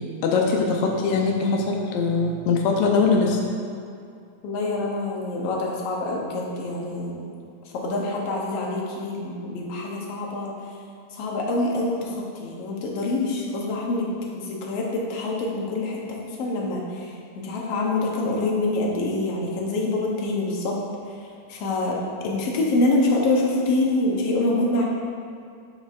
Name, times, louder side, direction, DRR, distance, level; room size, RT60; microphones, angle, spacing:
voice 1, 0.2-3.4, left 4 dB, 80° left, 0 dB, 1.3 m, -21 dB
voice 2, 4.4-7.2 7.7-10.5 11.2-14.1 14.3-16.0 16.4-16.8 17.4-20.8 21.5-22.0 22.2-24.8, left 2 dB, 65° left, -2 dB, 1.8 m, -25 dB
11.5 x 5.2 x 2.5 m, 2.4 s
omnidirectional pair, 3.4 m